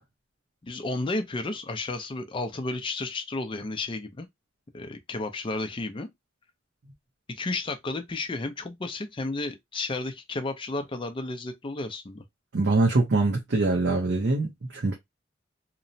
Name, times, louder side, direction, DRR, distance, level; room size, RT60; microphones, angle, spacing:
voice 1, 0.6-4.3 4.7-6.1 7.4-12.2, left 2 dB, 30° left, 0.4 m, -32 dB
voice 2, 12.5-14.9, right 3 dB, 65° right, 0.6 m, -23 dB
2.9 x 2.0 x 2.6 m
head